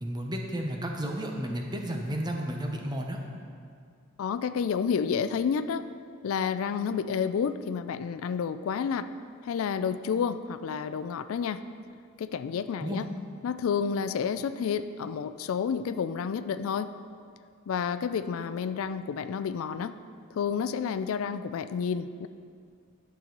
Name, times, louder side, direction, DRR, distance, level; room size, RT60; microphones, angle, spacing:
voice 1, 0.0-3.2 12.8-13.0, equal, 20° right, 2 dB, 0.8 m, -32 dB
voice 2, 4.2-5.9 6.2-9.1 9.4-11.6 12.2-13.1 13.4-16.9 17.7-19.9 20.4-22.3, left 6 dB, 80° left, 12 dB, 0.3 m, -30 dB
11.0 x 6.9 x 3.8 m, 2.3 s
head